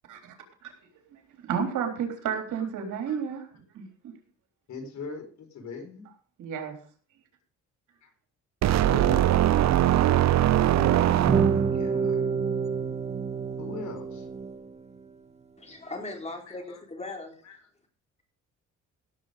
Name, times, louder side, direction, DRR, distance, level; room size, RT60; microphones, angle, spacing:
voice 1, 1.5-3.5 3.7-3.9 6.4-6.8, right 7 dB, 80° right, 4 dB, 3.7 m, -31 dB
voice 2, 2.3-2.7 3.1-3.2 4.7-6.1 8.0-8.1 8.6-9.3 11.2-12.3 13.6-14.3 16.1-16.8 17.4-17.6, left 4 dB, 65° left, 5 dB, 4.3 m, -41 dB
sound 1, 8.6-11.9, right 12 dB, 65° right, 0.8 m, -21 dB
sound 2, 10.8-15.0, right 5 dB, 20° right, 1.7 m, -28 dB
voice 3, 15.6-17.4, left 2 dB, 20° left, 3 dB, 4.1 m, -38 dB
16.5 x 7.4 x 5.1 m, 0.43 s
cardioid pair, 90°, 30 cm